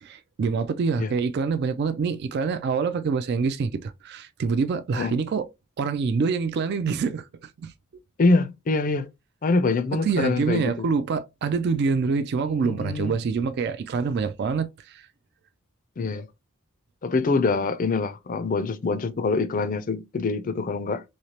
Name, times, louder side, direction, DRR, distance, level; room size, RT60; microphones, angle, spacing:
voice 1, 0.0-5.5 5.8-7.7 10.0-15.1, right 5 dB, 50° right, 0.3 m, -26 dB
voice 2, 8.2-9.1 9.4-10.9 12.4-13.2 16.0-16.3 17.0-21.0, left 3 dB, 40° left, 0.4 m, -25 dB
3.1 x 2.8 x 2.8 m
head